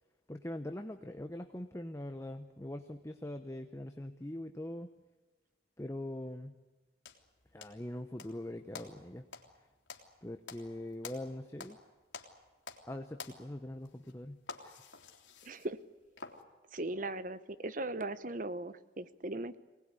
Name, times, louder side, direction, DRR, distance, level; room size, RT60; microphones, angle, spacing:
voice 1, 0.3-4.9 5.8-6.6 7.5-9.3 10.2-11.8 12.9-14.8, left 1 dB, 15° left, 6 dB, 1.0 m, -42 dB
sound 1, 7.1-8.4 8.7-11.8 12.1-12.9 13.2-16.4, left 4 dB, 85° left, 3.1 m, -49 dB
voice 2, 15.4-15.8 16.7-19.6, right 2 dB, 45° right, 14 dB, 1.0 m, -38 dB
24.5 x 19.0 x 9.8 m, 1.2 s
head